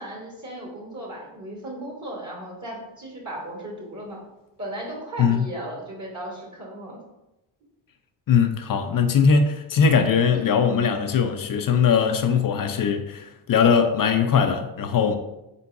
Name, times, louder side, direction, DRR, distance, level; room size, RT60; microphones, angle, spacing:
voice 1, 0.0-4.2 4.6-7.0 10.2-10.4, right 1 dB, 35° right, 1.3 m, -36 dB
voice 2, 5.2-5.5 8.3-15.1, left 6 dB, 45° left, 0.5 m, -20 dB
3.9 x 3.7 x 2.6 m
supercardioid pair, 50°, 49 cm